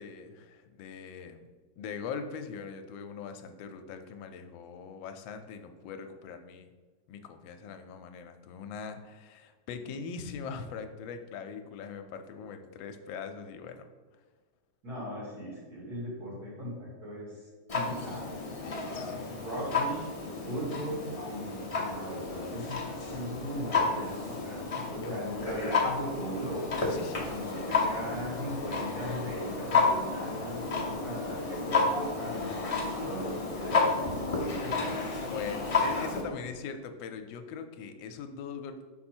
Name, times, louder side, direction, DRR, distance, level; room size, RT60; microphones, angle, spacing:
voice 1, 0.0-1.4 1.8-6.7 7.1-13.8 17.8-18.2 18.6-19.1 24.8-25.1 26.8-27.7 35.3-38.8, left 6 dB, 85° left, 7 dB, 1.3 m, -41 dB
voice 2, 14.8-17.4 17.7-18.3 19.0-20.1 20.5-22.8 23.1-26.7 27.2-32.5 32.9-35.0, equal, 55° right, -5 dB, 2.4 m, -38 dB
Clock, 17.7-36.2, left 4 dB, 45° left, 0.4 m, -31 dB
5.5 x 4.3 x 4.4 m, 1.4 s
omnidirectional pair, 2.0 m